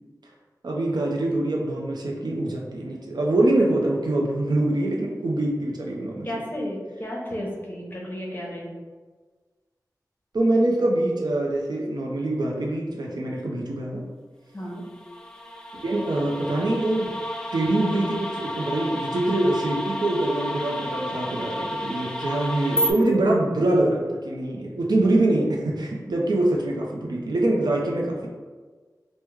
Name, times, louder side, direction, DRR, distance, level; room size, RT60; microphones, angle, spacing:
voice 1, 0.6-6.3 10.3-14.0 15.8-17.1 17.5-28.3, right 1 dB, 85° right, -1 dB, 0.5 m, -24 dB
voice 2, 6.2-8.7 14.5-14.8, equal, 30° left, -3 dB, 0.7 m, -33 dB
sound 1, 14.8-22.9, left 1 dB, 10° left, 0.3 m, -31 dB
3.4 x 2.1 x 3.1 m, 1.4 s
wide cardioid pair, 75°, 7 cm